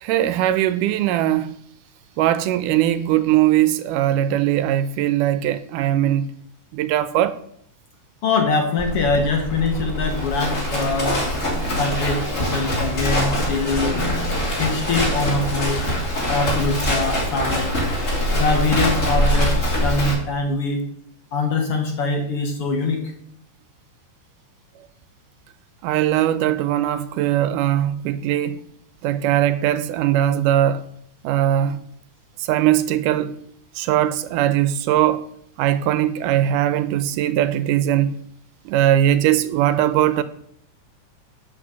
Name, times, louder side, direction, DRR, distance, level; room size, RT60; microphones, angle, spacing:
voice 1, 0.0-1.6 2.2-6.3 6.7-7.4 25.8-28.6 29.0-30.8 31.2-31.8 32.5-33.3 33.8-35.2 35.6-38.2 38.7-40.2, right 12 dB, 80° right, 2.2 m, -20 dB
voice 2, 8.2-11.2 11.7-14.0 14.6-15.8 16.3-17.7 18.3-20.9 21.3-23.0, left 3 dB, 55° left, 1.8 m, -23 dB
Livestock farm animals working animals, 8.8-20.1, equal, 25° left, 3.0 m, -23 dB
11.0 x 5.2 x 7.4 m
omnidirectional pair, 3.7 m